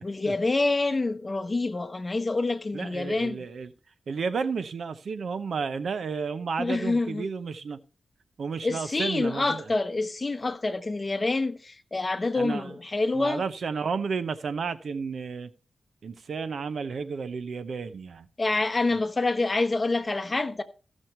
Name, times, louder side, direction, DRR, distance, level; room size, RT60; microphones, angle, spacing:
voice 1, 0.0-3.4 6.6-7.3 8.6-13.4 18.4-20.6, left 3 dB, 30° left, 1.1 m, -27 dB
voice 2, 2.7-3.7 4.1-7.8 8.4-9.6 12.3-12.8 13.1-15.5 16.0-18.3 18.9-19.0, right 5 dB, 70° right, 0.8 m, -32 dB
15.0 x 6.3 x 4.4 m
wide cardioid pair, 100°, 0 cm